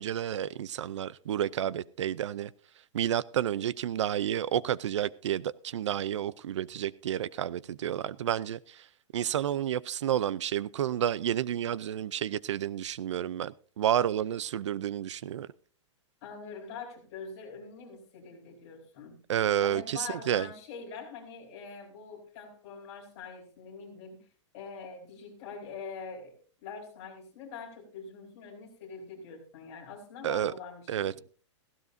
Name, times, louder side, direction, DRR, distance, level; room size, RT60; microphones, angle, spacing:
voice 1, 0.0-2.5 2.9-8.9 9.1-15.5 19.3-20.5 30.2-30.5 30.9-31.2, right 10 dB, 70° right, 0.5 m, -30 dB
voice 2, 16.2-19.2 19.6-24.3 24.5-26.3 26.6-31.2, left 5 dB, 30° left, 4.4 m, -44 dB
17.0 x 15.5 x 2.7 m
supercardioid pair, 180°, 16 cm